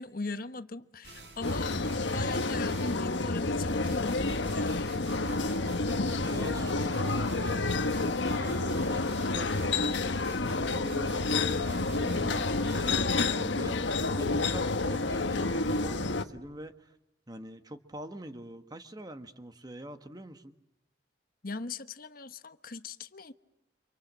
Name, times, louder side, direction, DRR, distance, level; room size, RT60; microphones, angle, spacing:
voice 1, 0.0-5.0 21.4-23.3, left 3 dB, 50° left, 1.1 m, -39 dB
sound 1, 1.0-3.3 3.8-13.3, right 2 dB, 65° right, 6.0 m, -49 dB
sound 2, 1.4-16.2, left 3 dB, 80° left, 1.3 m, -29 dB
sound 3, 3.2-16.6, left 1 dB, 10° left, 6.2 m, -54 dB
voice 2, 6.2-7.9 8.2-16.9 17.3-20.5, right 1 dB, 20° right, 1.4 m, -44 dB
30.0 x 26.5 x 7.5 m
head